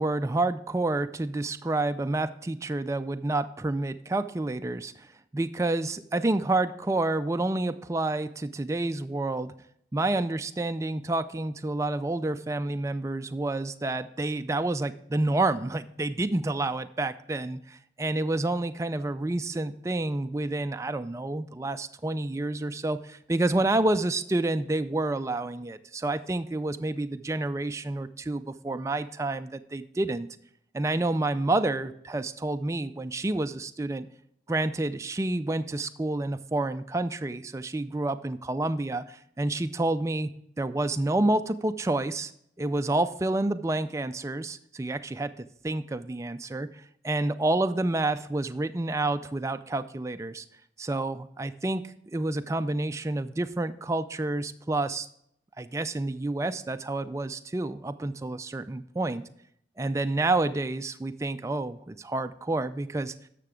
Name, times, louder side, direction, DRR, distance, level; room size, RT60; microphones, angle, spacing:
voice 1, 0.0-5.1 5.3-9.5 9.9-30.3 30.7-34.1 34.5-40.3 40.6-42.3 42.6-50.4 50.8-55.1 55.6-59.2 59.8-63.1, right 2 dB, 15° right, 10 dB, 0.3 m, -29 dB
11.5 x 6.6 x 3.6 m, 0.72 s
head